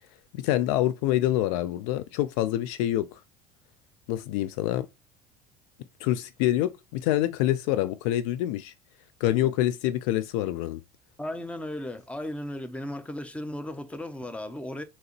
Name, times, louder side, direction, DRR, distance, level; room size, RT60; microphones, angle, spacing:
voice 1, 0.4-3.2 4.1-4.9 6.0-8.7 9.2-10.8, left 14 dB, 60° left, 0.4 m, -26 dB
voice 2, 11.2-14.8, left 1 dB, 5° left, 0.7 m, -35 dB
3.8 x 2.9 x 4.3 m
figure-of-eight pair, 65°, 20 cm